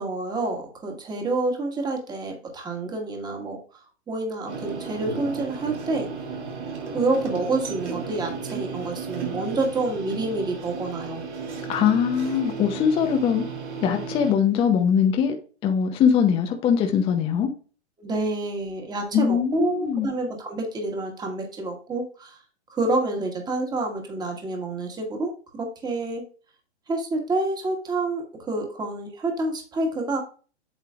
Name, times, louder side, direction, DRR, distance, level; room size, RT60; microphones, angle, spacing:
voice 1, 0.0-3.6 4.1-6.1 6.9-11.2 18.0-22.4 22.7-26.2 26.9-30.2, right 2 dB, 10° right, 2 dB, 1.7 m, -28 dB
sound 1, 4.5-14.3, right 5 dB, 85° right, 2.9 m, -34 dB
voice 2, 11.7-13.4 13.8-15.4 15.6-17.5 19.1-20.1, left 7 dB, 15° left, 5 dB, 0.7 m, -21 dB
8.4 x 6.6 x 2.4 m, 0.37 s
hypercardioid pair, 135°, 34 cm